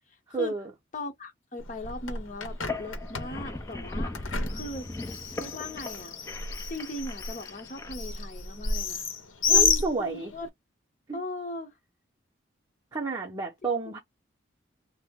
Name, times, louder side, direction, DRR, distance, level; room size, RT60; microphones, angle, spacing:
voice 1, 0.3-0.7 9.5-10.3 11.1-11.2 12.9-14.0, right 3 dB, 20° right, 0.6 m, -30 dB
voice 2, 0.9-4.9 5.4-6.2 6.7-9.0 9.5-10.5 11.1-11.7, left 1 dB, 40° left, 0.9 m, -38 dB
Bird, 1.6-10.5, left 5 dB, 85° left, 0.8 m, -31 dB
sound 1, 2.5-7.9, left 2 dB, 15° left, 0.4 m, -39 dB
3.2 x 2.0 x 3.4 m
head